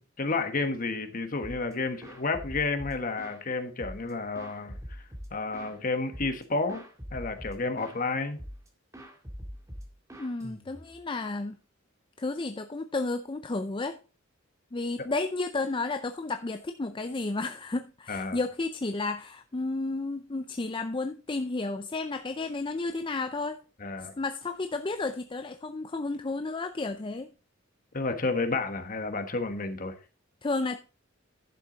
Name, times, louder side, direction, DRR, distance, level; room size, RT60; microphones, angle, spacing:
voice 1, 0.0-4.8 5.3-6.8 7.1-8.4 18.1-18.4 23.8-24.1 27.9-29.9, left 3 dB, 45° left, 7 dB, 1.3 m, -31 dB
sound 1, 1.4-1.7 2.0-3.4 3.8-5.8 6.1-6.4 6.7-8.0 8.4-8.7 8.9-11.0, equal, 15° right, 2.0 m, -43 dB
voice 2, 10.2-11.6 12.2-14.0 14.7-23.6 24.2-27.3 30.4-30.8, left 3 dB, 25° left, 8 dB, 0.5 m, -32 dB
11.0 x 7.3 x 3.9 m, 0.35 s
head